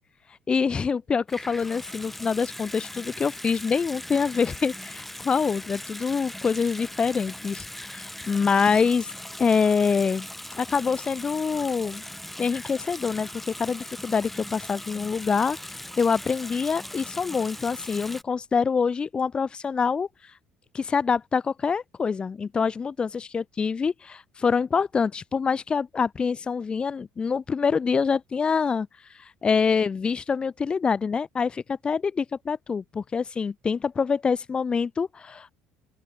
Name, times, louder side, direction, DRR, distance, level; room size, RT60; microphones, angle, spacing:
voice 1, 0.5-9.1 9.4-10.3 10.5-12.0 12.4-13.3 13.6-20.1 20.7-28.9 29.1-35.5, left 5 dB, 25° left, 1.2 m, -25 dB
Water tap faucet / Sink (filling or washing) / Bathtub (filling or washing), 1.3-18.2, left 1 dB, 5° left, 4.3 m, -39 dB
open air
cardioid pair, 115°, 4 cm